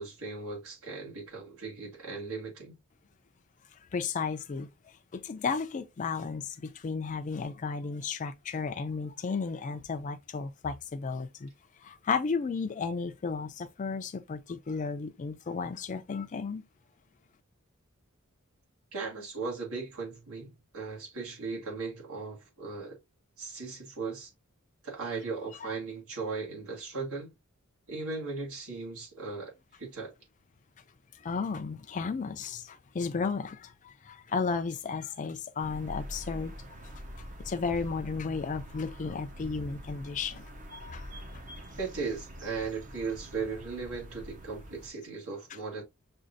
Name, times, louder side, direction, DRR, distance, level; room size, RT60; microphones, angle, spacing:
voice 1, 0.0-2.8 18.9-23.0 23.4-24.3 24.8-27.3 27.9-30.1 41.8-45.8, right 4 dB, 80° right, 1.7 m, -37 dB
voice 2, 3.9-4.7 5.1-11.5 11.8-16.6 31.1-36.5 37.2-41.1, left 5 dB, 35° left, 0.4 m, -34 dB
sound 1, 35.6-44.9, equal, 35° right, 0.6 m, -45 dB
6.1 x 2.4 x 2.5 m
head